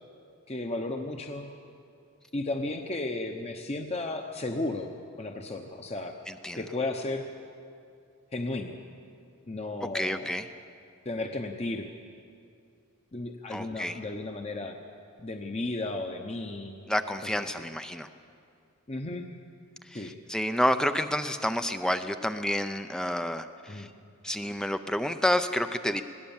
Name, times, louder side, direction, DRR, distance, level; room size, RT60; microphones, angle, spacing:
voice 1, 0.5-1.5 2.3-4.9 5.2-6.1 6.5-7.2 8.3-8.8 9.5-10.3 11.0-11.9 13.1-14.8 15.2-16.8 17.2-17.7 18.9-19.3 19.9-20.2 23.7-23.9, left 2 dB, 30° left, 4 dB, 0.9 m, -34 dB
voice 2, 6.3-6.6 9.9-10.5 13.5-14.0 16.9-18.1 19.9-23.9 24.2-26.0, left 1 dB, 5° left, 8 dB, 0.5 m, -29 dB
21.0 x 17.0 x 7.2 m, 2.4 s
head